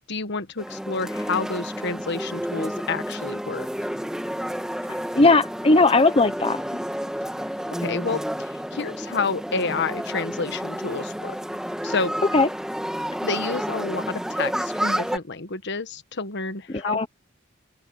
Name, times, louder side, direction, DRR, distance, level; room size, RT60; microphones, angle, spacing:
voice 1, 0.1-3.9 7.8-11.4 11.8-12.1 13.2-17.0, left 4 dB, 60° left, 1.3 m, -29 dB
sound 1, 0.6-15.2, equal, 5° right, 2.2 m, -30 dB
voice 2, 5.1-6.6 12.3-12.5 16.7-17.1, left 3 dB, 30° left, 0.9 m, -18 dB
open air
head